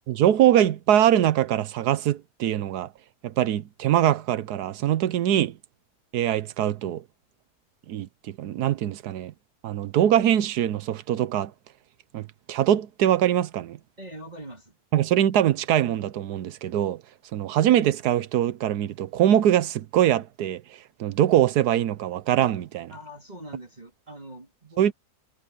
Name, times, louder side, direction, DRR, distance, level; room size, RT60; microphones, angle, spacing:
voice 1, 0.1-2.9 3.2-5.6 6.1-7.0 7.9-9.3 9.6-11.5 12.1-13.8 14.9-17.0 17.3-20.6 21.0-22.9 24.8-24.9, right 11 dB, 75° right, 1.3 m, -23 dB
voice 2, 14.0-14.8 22.9-24.9, right 1 dB, 25° right, 2.7 m, -42 dB
omnidirectional pair, 1.7 m